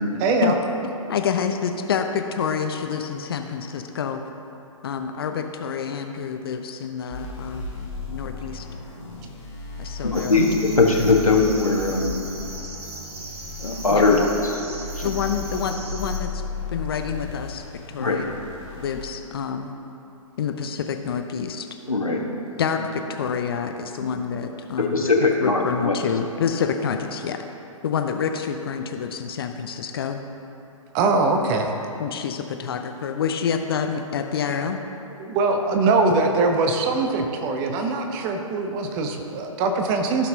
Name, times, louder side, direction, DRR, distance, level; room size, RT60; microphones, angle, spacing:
voice 1, 0.2-0.6 30.9-31.7 35.2-40.3, right 3 dB, 25° right, 4 dB, 0.8 m, -22 dB
voice 2, 1.1-4.2 4.8-7.6 8.1-8.6 9.8-10.4 13.9-14.3 15.0-16.3 16.7-17.6 17.9-18.3 18.7-19.7 20.4-21.7 22.6-27.4 27.8-30.2 32.0-34.8, left 7 dB, 45° left, 6 dB, 0.5 m, -27 dB
sound 1, 7.1-19.0, left 3 dB, 15° left, 2.1 m, -35 dB
voice 3, 10.0-12.2 13.6-14.5 15.0-15.1 18.0-18.2 21.9-22.2 22.8-22.9 24.0-24.1 24.8-25.9, left 3 dB, 85° left, -1 dB, 1.3 m, -20 dB
sound 2, 10.1-16.2, right 2 dB, 50° right, 1.4 m, -39 dB
15.0 x 5.8 x 2.8 m, 2.8 s
figure-of-eight pair, 125°, 18 cm